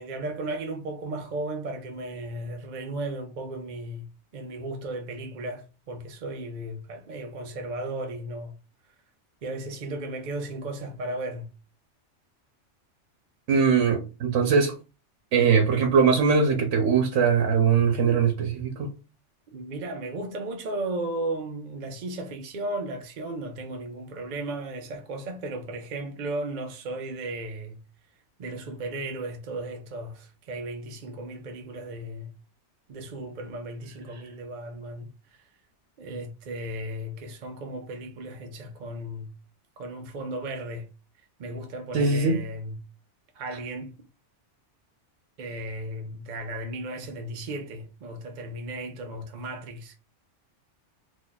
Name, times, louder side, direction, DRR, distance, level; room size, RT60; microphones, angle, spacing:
voice 1, 0.0-4.1 4.3-8.5 9.4-11.5 19.5-27.8 28.4-32.3 32.9-35.5 36.0-39.3 39.8-40.9 41.4-42.8 43.3-44.1 45.4-50.0, right 2 dB, 55° right, 0.5 m, -35 dB
voice 2, 13.5-14.7 15.3-18.9 41.9-42.4, right 5 dB, 90° right, 1.0 m, -21 dB
2.7 x 2.3 x 3.8 m
omnidirectional pair, 1.2 m